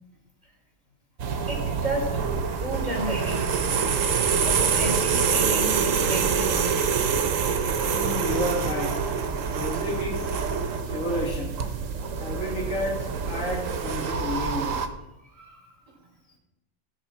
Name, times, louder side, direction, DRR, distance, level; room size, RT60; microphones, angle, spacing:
sound 1, 1.2-14.9, right 6 dB, 90° right, 1.3 m, -26 dB
voice 1, 1.5-3.6 4.4-6.6 15.2-16.0, right 1 dB, 35° right, -2 dB, 3.6 m, -33 dB
voice 2, 7.8-8.9 9.5-10.2 10.9-11.6 12.2-14.8, left 1 dB, 80° left, -2 dB, 3.1 m, -31 dB
18.0 x 7.2 x 4.3 m, 0.94 s
omnidirectional pair, 1.3 m